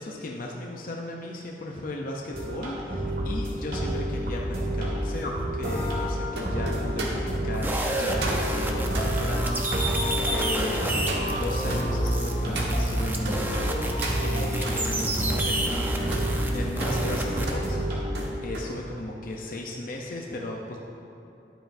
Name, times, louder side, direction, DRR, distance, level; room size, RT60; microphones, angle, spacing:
voice 1, 0.0-10.0 10.2-16.3 16.5-18.0 18.4-20.8, left 2 dB, 50° left, 0 dB, 0.6 m, -36 dB
sound 1, 2.3-18.4, equal, 55° right, 1.9 m, -30 dB
sound 2, 2.7-13.4 13.8-14.8 15.3-18.7 19.1-19.4, right 2 dB, 75° right, 1.4 m, -38 dB
sound 3, 7.5-17.5, right 1 dB, 10° right, 0.7 m, -29 dB
11.5 x 8.9 x 2.6 m, 2.9 s
head